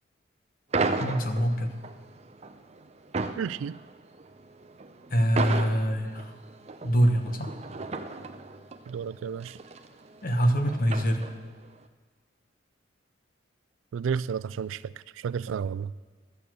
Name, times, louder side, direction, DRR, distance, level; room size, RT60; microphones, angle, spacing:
sound 1, 0.7-11.7, right 3 dB, 35° right, 0.6 m, -35 dB
voice 1, 1.0-1.7 5.1-6.2 6.8-7.5 10.2-11.3, equal, 50° left, 6 dB, 1.2 m, -24 dB
voice 2, 3.4-3.8 8.9-9.6 13.9-15.9, right 7 dB, 90° right, 19 dB, 0.3 m, -32 dB
13.5 x 6.9 x 7.7 m, 1.5 s
head